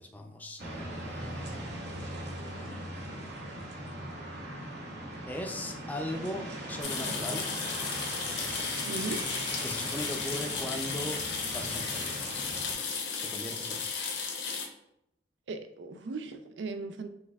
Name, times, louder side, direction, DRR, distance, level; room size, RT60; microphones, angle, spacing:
voice 1, 0.0-1.7 5.3-7.5 9.6-11.2 11.5-12.3 13.3-13.9, left 1 dB, 10° left, 3 dB, 0.4 m, -39 dB
sound 1, 0.6-12.7, right 1 dB, 65° right, 0.9 m, -39 dB
sound 2, 6.8-14.7, left 5 dB, 75° left, 0.7 m, -34 dB
voice 2, 8.9-9.2 15.5-17.1, right 3 dB, 90° right, 8 dB, 0.4 m, -37 dB
5.2 x 3.5 x 2.3 m, 0.80 s
head